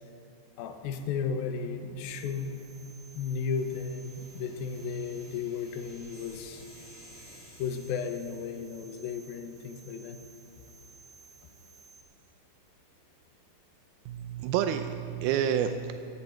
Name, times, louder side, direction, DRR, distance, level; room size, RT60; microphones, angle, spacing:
voice 1, 0.6-2.6 3.1-6.7 7.6-10.2, left 6 dB, 80° left, 7 dB, 2.7 m, -34 dB
sound 1, 0.6-15.0, left 1 dB, 55° left, 4.7 m, -60 dB
sound 2, 2.0-12.0, right 5 dB, 30° right, 1.4 m, -56 dB
sound 3, 3.0-8.9, left 1 dB, 35° left, 4.8 m, -57 dB
voice 2, 14.1-16.0, right 9 dB, 85° right, 8 dB, 2.5 m, -29 dB
16.0 x 14.5 x 4.5 m, 2.6 s
omnidirectional pair, 4.3 m